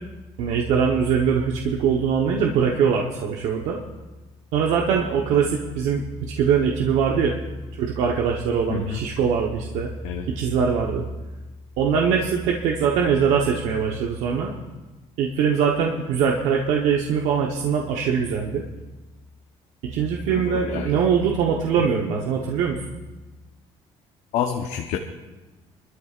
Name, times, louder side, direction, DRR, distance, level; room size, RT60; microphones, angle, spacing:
voice 1, 0.4-3.8 4.5-7.3 7.8-9.9 10.3-11.0 11.8-14.5 15.2-18.6 19.9-23.0, right 6 dB, 80° right, 0 dB, 1.1 m, -22 dB
voice 2, 20.3-20.9 21.8-21.9 24.3-25.0, left 8 dB, 80° left, 3 dB, 0.9 m, -28 dB
23.5 x 13.0 x 2.5 m, 1.2 s
cardioid pair, 155°, 12 cm